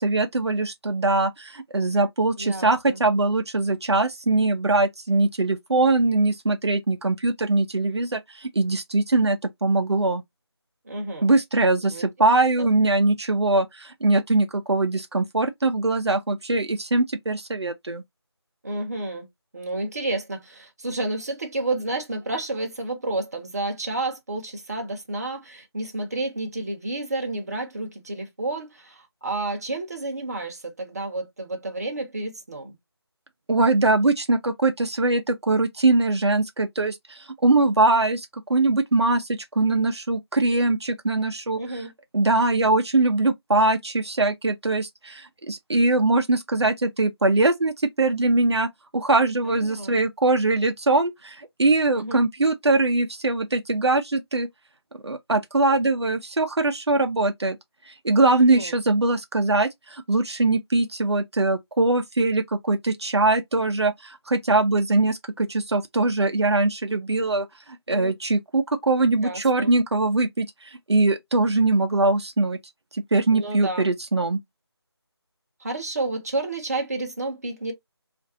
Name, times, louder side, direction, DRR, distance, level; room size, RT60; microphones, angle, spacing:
voice 1, 0.0-10.2 11.2-18.0 33.5-41.8 42.1-54.5 55.0-57.6 57.9-67.5 67.9-72.6 72.9-74.4, right 2 dB, 75° right, 0.6 m, -22 dB
voice 2, 2.4-3.0 10.8-11.3 11.9-12.1 12.6-12.7 18.6-19.3 19.5-32.8 41.5-41.9 49.4-50.0 51.9-52.2 58.3-58.8 67.9-68.1 69.2-69.7 73.3-73.9 75.6-77.7, right 2 dB, 35° right, 0.9 m, -30 dB
3.8 x 2.5 x 2.7 m
figure-of-eight pair, 170°, 14 cm